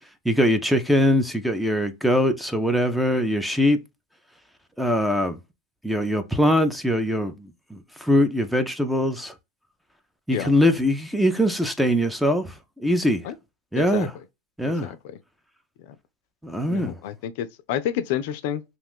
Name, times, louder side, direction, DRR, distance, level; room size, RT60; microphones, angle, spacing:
voice 1, 0.2-3.8 4.8-5.4 5.8-9.3 10.3-13.3 13.7-14.1 14.6-14.9 16.4-16.9, equal, ahead, 0.5 m, -22 dB
voice 2, 13.7-14.1 14.8-15.0 15.8-16.0 16.7-18.6, left 10 dB, 65° left, 0.4 m, -29 dB
2.5 x 2.3 x 3.5 m
hypercardioid pair, 115°, 0 cm